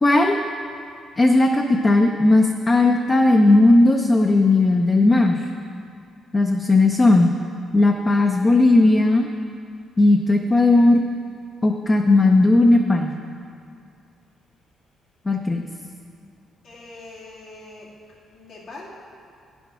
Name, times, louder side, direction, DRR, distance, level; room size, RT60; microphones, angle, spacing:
voice 1, 0.0-0.4 1.2-5.4 6.3-7.3 7.7-9.3 10.0-11.0 11.6-13.1 15.3-15.6, left 2 dB, 25° left, 2 dB, 0.6 m, -16 dB
voice 2, 16.6-17.9 18.3-18.9, left 2 dB, 70° left, -5 dB, 2.3 m, -42 dB
9.6 x 7.1 x 6.1 m, 2.4 s
cardioid pair, 90°, 0 cm